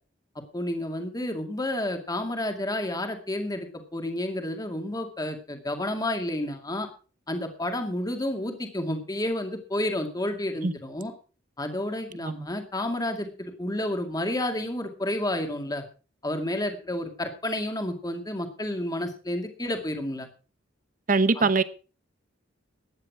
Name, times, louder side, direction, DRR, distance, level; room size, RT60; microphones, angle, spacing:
voice 1, 0.5-6.9 7.3-11.1 11.6-15.8 16.2-20.3 21.4-21.5, left 1 dB, 20° left, 2.2 m, -30 dB
voice 2, 21.1-21.6, right 3 dB, 45° right, 1.0 m, -22 dB
15.0 x 10.5 x 4.8 m
head